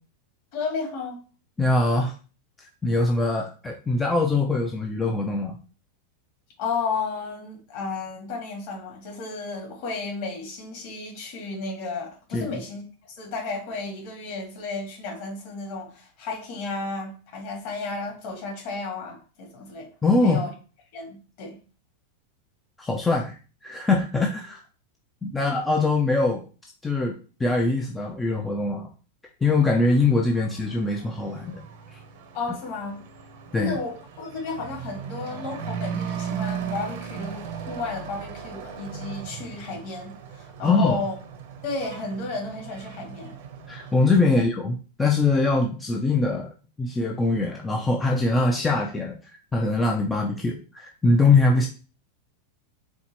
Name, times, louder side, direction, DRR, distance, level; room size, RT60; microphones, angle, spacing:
voice 1, 0.5-1.2 6.6-12.8 13.2-19.9 20.2-20.5 20.9-21.6 32.3-33.0 33.5-41.1 41.6-43.4 44.3-44.4, left 3 dB, 45° left, 1.9 m, -33 dB
voice 2, 1.6-2.1 2.8-5.6 12.3-12.5 20.0-20.4 22.8-24.6 25.2-26.4 26.8-28.9 29.4-31.6 31.9-32.0 33.5-33.8 40.6-41.0 43.7-46.5 46.8-51.7, left 3 dB, 10° left, 0.4 m, -23 dB
Truck / Accelerating revving vroom, 29.7-44.2, right 7 dB, 60° right, 0.8 m, -37 dB
4.4 x 2.4 x 4.2 m
supercardioid pair, 160°, 0 cm